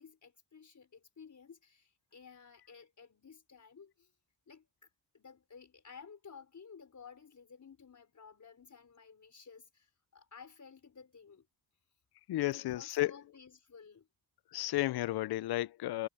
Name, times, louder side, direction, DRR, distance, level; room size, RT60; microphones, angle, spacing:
voice 1, 0.0-4.1 4.5-4.9 5.1-11.5 12.6-14.1, left 6 dB, 45° left, 4.8 m, -55 dB
voice 2, 12.3-13.3 14.5-16.1, left 16 dB, 60° left, 0.6 m, -33 dB
cardioid pair, 80°, 43 cm